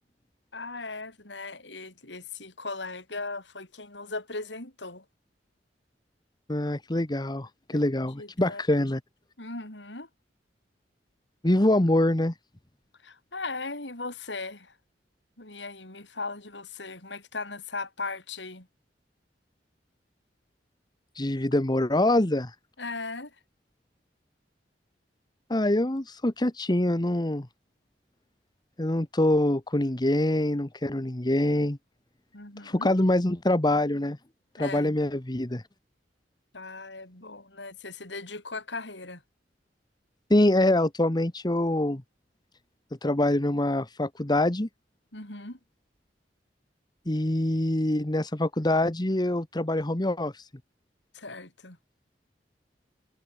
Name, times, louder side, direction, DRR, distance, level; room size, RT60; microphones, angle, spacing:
voice 1, 0.5-5.1 7.7-8.6 9.4-10.1 13.0-14.8 15.4-18.7 22.8-23.4 32.3-32.9 34.6-35.0 36.5-39.2 45.1-45.6 51.1-51.8, left 3 dB, 80° left, 6.8 m, -38 dB
voice 2, 6.5-9.0 11.4-12.3 21.2-22.5 25.5-27.5 28.8-31.8 32.6-34.2 34.6-35.6 40.3-42.0 43.0-44.7 47.1-50.4, left 1 dB, 25° left, 1.3 m, -25 dB
head